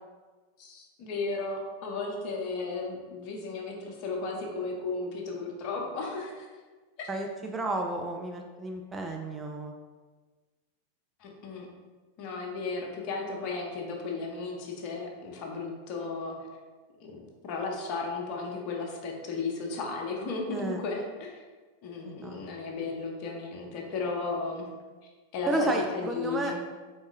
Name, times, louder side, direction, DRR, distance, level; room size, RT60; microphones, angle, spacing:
voice 1, 0.6-6.5 7.0-7.1 11.2-11.7 12.2-16.4 17.0-21.4 21.8-24.7 25.3-26.6, left 3 dB, 40° left, 1 dB, 0.7 m, -35 dB
voice 2, 7.1-9.7 20.5-20.8 22.0-22.4 25.5-26.5, right 2 dB, 15° right, 2 dB, 0.3 m, -32 dB
3.9 x 3.5 x 2.4 m, 1.4 s
figure-of-eight pair, 90°, 0 cm